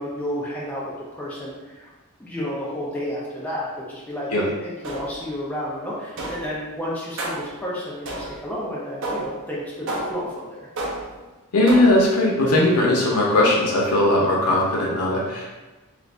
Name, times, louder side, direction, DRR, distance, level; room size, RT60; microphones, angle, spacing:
voice 1, 0.0-1.9 2.2-10.7, equal, 5° left, -7 dB, 0.5 m, -31 dB
sound 1, 4.8-5.3 6.2-6.6 7.2-7.6 8.0-8.5 9.0-9.4 9.9-10.3 10.8-11.2 11.7-12.1, right 1 dB, 60° right, 0.6 m, -31 dB
voice 2, 11.5-15.6, left 1 dB, 90° left, -3 dB, 0.7 m, -19 dB
2.5 x 2.5 x 3.2 m, 1.2 s
head